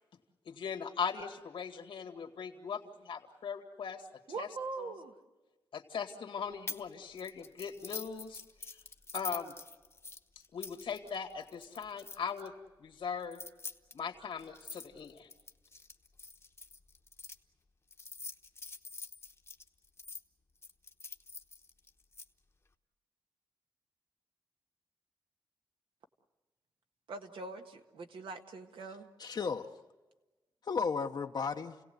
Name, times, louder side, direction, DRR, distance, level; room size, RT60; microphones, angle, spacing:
voice 1, 0.5-5.1 5.7-8.4 8.7-8.8 9.1-9.5 10.5-12.5 12.8-13.4 13.9-15.3, left 6 dB, 85° left, 3 dB, 2.0 m, -40 dB
voice 2, 4.3-5.1 27.1-29.1, right 4 dB, 80° right, 5 dB, 1.6 m, -42 dB
sound 1, 6.7-6.9 7.2-12.5 13.2-17.3 17.9-20.2 20.6-22.2, left 3 dB, 30° left, 1.0 m, -46 dB
voice 3, 28.9-29.8 30.6-31.8, left 5 dB, 55° left, 4 dB, 0.8 m, -35 dB
29.5 x 17.5 x 7.9 m, 1.2 s
wide cardioid pair, 115°, 9 cm